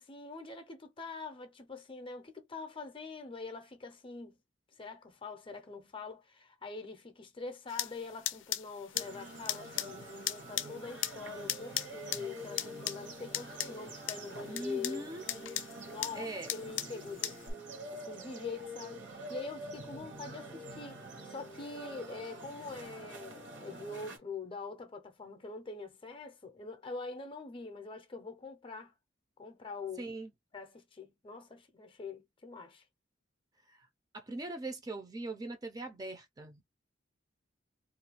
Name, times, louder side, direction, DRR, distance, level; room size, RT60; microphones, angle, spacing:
voice 1, 0.0-4.4 4.8-15.1 15.9-17.4 17.9-21.0 21.2-28.9 29.4-30.1 30.5-32.8, left 4 dB, 30° left, 0.5 m, -44 dB
sound 1, 7.7-17.5, left 13 dB, 75° left, 0.4 m, -39 dB
sound 2, 8.9-24.2, right 1 dB, 70° right, 1.1 m, -46 dB
voice 2, 14.5-15.2 16.2-16.5 30.0-30.3 33.7-33.9 34.1-36.7, right 2 dB, 20° right, 0.5 m, -41 dB
2.5 x 2.2 x 2.9 m
head